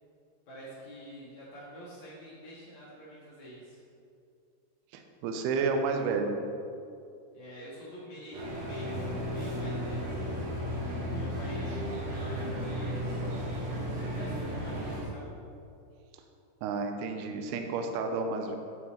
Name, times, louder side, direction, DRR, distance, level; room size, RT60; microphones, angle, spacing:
voice 1, 0.5-3.8 7.3-10.3 11.1-11.8 12.1-13.3 14.0-15.3, equal, 75° left, -7 dB, 1.6 m, -47 dB
voice 2, 4.9-6.3 16.6-18.6, right 4 dB, 90° right, 5 dB, 2.2 m, -31 dB
Bourke St Mall atmos, 8.3-15.0, equal, 65° right, 1.6 m, -34 dB
8.6 x 6.7 x 4.3 m, 2.5 s
omnidirectional pair, 5.4 m